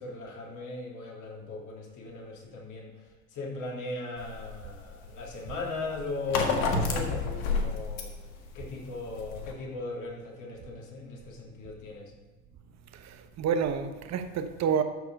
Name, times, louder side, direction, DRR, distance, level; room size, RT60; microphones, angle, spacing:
voice 1, 0.0-2.9 3.3-8.1 8.5-12.1, left 3 dB, 45° left, -1 dB, 3.0 m, -38 dB
sound 1, 4.2-9.5, left 4 dB, 75° left, 1.7 m, -31 dB
voice 2, 13.0-14.8, right 7 dB, 40° right, 8 dB, 1.1 m, -29 dB
12.5 x 4.8 x 5.4 m, 1.2 s
hypercardioid pair, 90°, 41 cm